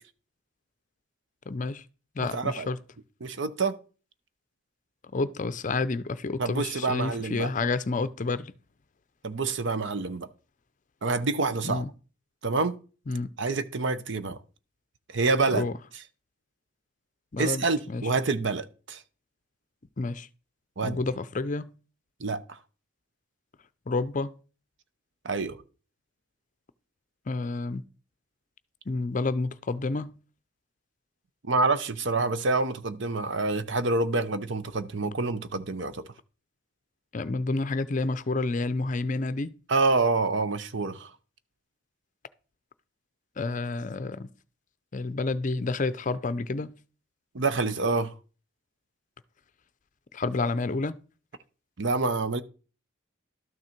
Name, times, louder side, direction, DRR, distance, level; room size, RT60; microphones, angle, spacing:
voice 1, 1.5-1.8 2.2-2.8 5.1-8.5 11.6-11.9 13.1-13.3 15.5-15.7 17.3-18.0 20.0-20.3 20.8-21.7 23.9-24.3 27.3-27.8 28.9-30.1 37.1-39.5 43.4-44.3 44.9-46.7 50.1-51.0, left 3 dB, 40° left, 0.5 m, -29 dB
voice 2, 2.2-2.7 3.2-3.8 6.4-7.5 9.2-10.3 11.0-11.8 12.4-12.8 13.4-14.4 15.1-15.7 17.4-19.0 20.8-21.0 22.2-22.6 25.2-25.6 31.4-36.0 39.7-41.1 47.3-48.1 51.8-52.4, right 3 dB, 65° right, 0.7 m, -27 dB
12.5 x 6.4 x 4.4 m
head